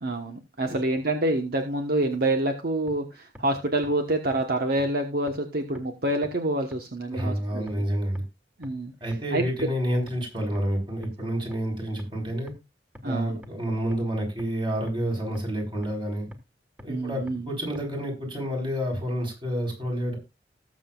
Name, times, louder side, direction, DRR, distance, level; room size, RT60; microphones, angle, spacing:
voice 1, 0.0-7.7 8.6-8.9 9.3-9.4 13.0-13.4 16.9-17.5, right 1 dB, 60° right, 4 dB, 1.2 m, -27 dB
sound 1, 2.9-3.0 3.4-3.5 3.8-3.9 4.3-4.4 4.8-4.9 5.3-5.4 5.8-5.9 6.2-6.3 6.7-6.8 7.2-7.3 7.7-7.8 8.2-8.3 8.6-8.7 9.1-9.2 9.6-9.7 10.1-10.2 10.6-10.7 11.0-11.1 11.5-11.6 12.0-12.1 12.5-12.6 13.0-13.1 13.4-13.5 13.9-14.0 14.4-14.5 14.9-15.0 15.4-15.5 15.8-15.9 16.3-16.4 16.8-16.9 17.3-17.4 17.8-17.9, equal, 10° right, 1.5 m, -44 dB
voice 2, 7.1-8.2 9.0-12.5 13.0-16.3 16.8-20.2, equal, 30° right, 1 dB, 4.5 m, -29 dB
19.0 x 7.4 x 2.4 m, 0.24 s
head